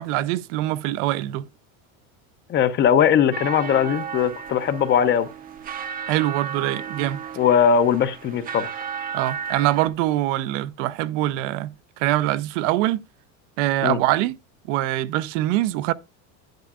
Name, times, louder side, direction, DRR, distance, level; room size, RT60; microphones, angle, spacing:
voice 1, 0.0-1.4 6.1-7.2 9.1-11.7 12.0-13.0 13.6-14.4 14.7-15.9, right 15 dB, 70° right, 0.6 m, -23 dB
voice 2, 2.5-5.3 7.4-8.7 13.8-14.0, left 8 dB, 30° left, 0.6 m, -20 dB
sound 1, 3.3-9.9, right 7 dB, 25° right, 0.6 m, -34 dB
10.5 x 9.6 x 2.4 m
cardioid pair, 155°, 38 cm